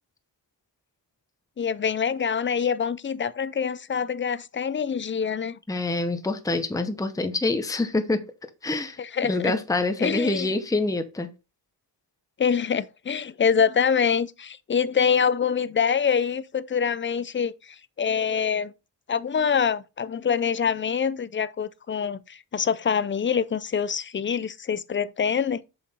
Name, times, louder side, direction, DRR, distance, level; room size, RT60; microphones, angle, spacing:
voice 1, 1.6-5.6 9.0-9.6 10.0-10.5 12.4-18.7 19.1-25.6, left 7 dB, 30° left, 0.5 m, -25 dB
voice 2, 5.7-8.2 8.6-11.3, left 2 dB, 10° left, 0.9 m, -26 dB
7.4 x 6.0 x 4.3 m
wide cardioid pair, 135°, 44 cm